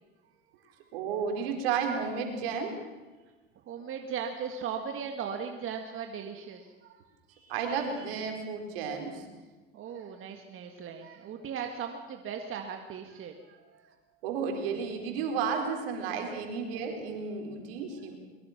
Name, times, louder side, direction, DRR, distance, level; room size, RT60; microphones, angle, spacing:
voice 1, 0.9-2.7 7.3-9.2 14.2-18.1, right 6 dB, 75° right, 3 dB, 4.6 m, -32 dB
voice 2, 3.6-7.0 9.7-13.9 17.9-18.0, right 7 dB, 45° right, 4 dB, 2.0 m, -38 dB
22.0 x 22.0 x 6.0 m, 1.2 s
hypercardioid pair, 90°, 29 cm